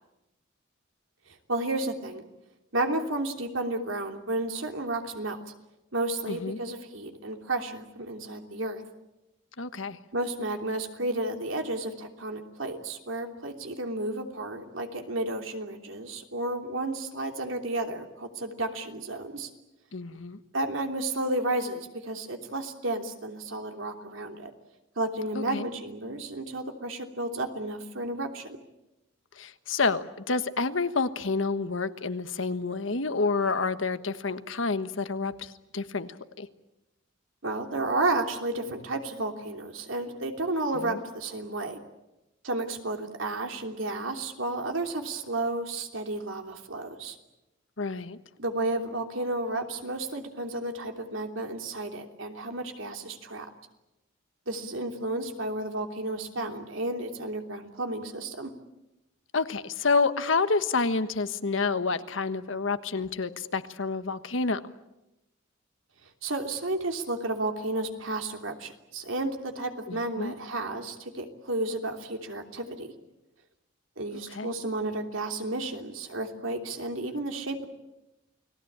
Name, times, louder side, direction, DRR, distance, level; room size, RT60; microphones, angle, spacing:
voice 1, 1.5-2.2 2.7-5.4 5.9-8.8 10.1-19.5 20.5-24.5 25.0-28.6 37.4-41.8 42.4-47.2 48.4-53.5 54.5-58.5 66.2-72.9 74.0-77.7, right 2 dB, 85° right, 4 dB, 3.1 m, -32 dB
voice 2, 6.3-6.6 9.6-10.0 19.9-20.4 25.3-25.6 29.4-36.5 40.8-41.0 47.8-48.2 59.3-64.6 69.9-70.3 74.3-74.5, left 4 dB, 80° left, 11 dB, 1.3 m, -29 dB
29.5 x 19.5 x 8.8 m, 0.95 s
head